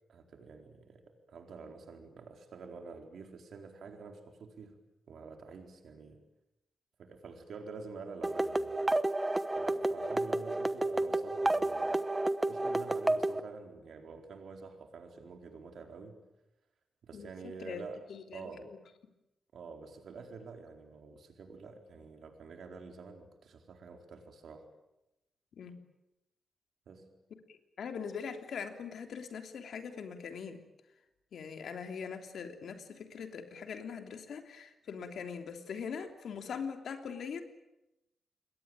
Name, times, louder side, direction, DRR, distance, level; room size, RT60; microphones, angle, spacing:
voice 1, 0.1-4.8 5.1-6.2 7.0-8.9 9.6-12.0 12.5-16.2 17.0-18.1 18.3-18.7 19.5-24.7 26.9-27.1, right 4 dB, 75° right, 4 dB, 4.3 m, -48 dB
sound 1, 8.2-13.4, right 2 dB, 15° right, 1.1 m, -31 dB
voice 2, 18.1-18.5 25.6-25.8 27.5-30.6 31.3-37.4, left 6 dB, 80° left, 6 dB, 3.2 m, -41 dB
28.5 x 22.0 x 9.0 m, 0.92 s
wide cardioid pair, 115°, 0 cm